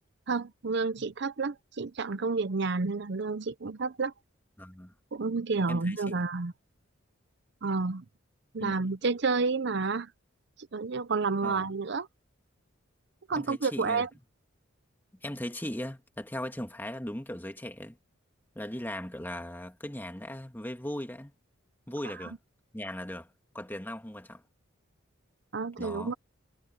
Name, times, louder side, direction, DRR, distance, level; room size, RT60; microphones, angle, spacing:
voice 1, 0.3-4.1 5.1-6.5 7.6-8.0 8.5-10.1 10.6-12.1 13.3-14.1 22.0-22.3 25.5-26.1, right 4 dB, 60° right, 0.6 m, -30 dB
voice 2, 4.6-4.9 5.7-6.2 8.6-8.8 11.4-11.7 13.4-14.1 15.2-18.0 18.6-21.3 21.9-22.4 22.7-23.3 23.5-24.4 25.8-26.2, left 1 dB, 10° left, 1.8 m, -38 dB
head